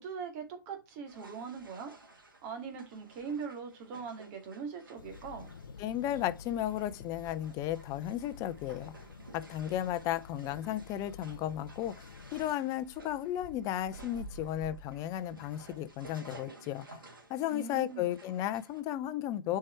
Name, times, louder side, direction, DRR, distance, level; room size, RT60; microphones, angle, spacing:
voice 1, 0.0-1.9 2.4-5.5 17.5-18.1, right 6 dB, 40° right, 2.3 m, -41 dB
sound 1, 1.1-18.8, right 2 dB, 85° right, 2.4 m, -53 dB
sound 2, 5.0-12.6, left 6 dB, 75° left, 0.5 m, -50 dB
voice 2, 5.8-8.9 9.3-12.1 12.3-17.0 17.3-19.6, left 12 dB, 30° left, 0.6 m, -34 dB
7.5 x 4.7 x 4.4 m
figure-of-eight pair, 110°, 11 cm